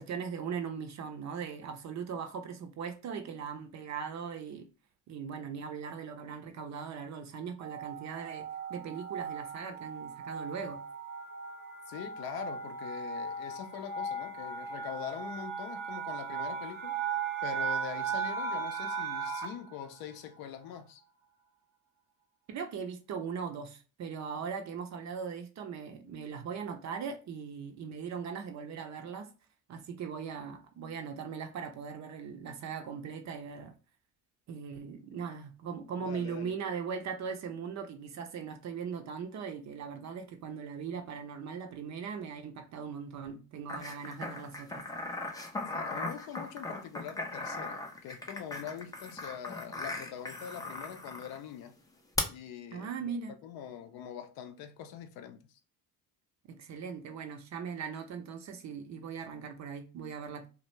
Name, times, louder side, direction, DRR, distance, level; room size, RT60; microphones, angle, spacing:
voice 1, 0.0-4.7 5.1-10.8 22.5-29.3 29.7-33.7 34.5-44.8 52.7-53.4 56.5-60.5, right 6 dB, 40° right, 0.5 m, -39 dB
sound 1, 7.6-19.7, right 5 dB, 75° right, 0.7 m, -37 dB
voice 2, 11.9-17.0 17.4-21.0 36.0-36.6 45.7-51.8 52.3-53.1 53.4-55.4, left 9 dB, 60° left, 0.5 m, -43 dB
sound 2, 43.7-51.4 52.2-52.3, left 2 dB, 10° left, 0.4 m, -38 dB
2.4 x 2.1 x 3.0 m
hypercardioid pair, 65°, 42 cm